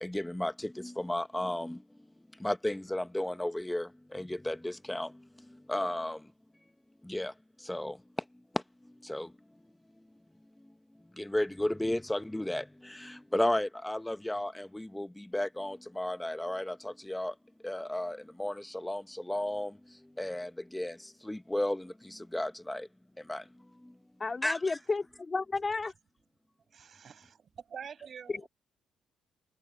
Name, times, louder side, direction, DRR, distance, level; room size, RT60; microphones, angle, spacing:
voice 1, 0.0-1.8 2.4-5.1 5.7-6.2 7.1-7.3 7.6-8.0 9.0-9.3 11.2-17.3 17.6-19.7 20.2-21.0 21.2-22.9 23.3-23.4 24.4-24.8, left 1 dB, 10° left, 1.0 m, -33 dB
voice 2, 24.2-25.9 28.3-28.5, left 3 dB, 30° left, 3.0 m, -32 dB
voice 3, 26.7-28.5, right 7 dB, 50° right, 5.7 m, -46 dB
cardioid pair, 90°, 0 cm